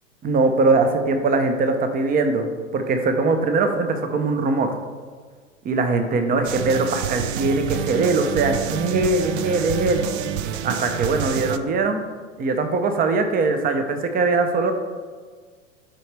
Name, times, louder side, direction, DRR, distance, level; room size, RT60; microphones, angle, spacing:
voice 1, 0.2-2.5 2.7-4.7 5.6-10.0 10.6-12.0 12.4-14.7, right 3 dB, 25° right, 7 dB, 0.7 m, -21 dB
sound 1, 6.4-11.6, right 9 dB, 55° right, 0.6 m, -28 dB
7.6 x 4.8 x 3.4 m, 1.5 s
hypercardioid pair, 105°, 39 cm